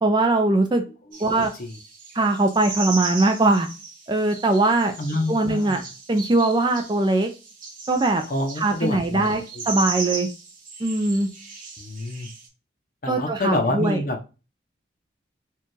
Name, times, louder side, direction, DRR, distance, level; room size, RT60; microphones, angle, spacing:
voice 1, 0.0-0.8 1.2-1.5 2.2-3.7 4.1-4.9 5.3-5.8 6.1-7.3 7.9-8.2 8.6-10.3 10.8-11.3 13.1-14.0, right 2 dB, 25° right, 5 dB, 0.4 m, -21 dB
sound 1, 1.1-12.5, right 4 dB, 45° right, 1.2 m, -37 dB
voice 2, 1.3-1.7 5.0-5.8 8.3-9.6 11.8-12.3 13.0-14.2, left 1 dB, 45° left, 3 dB, 0.7 m, -27 dB
4.4 x 2.4 x 3.1 m, 0.31 s
head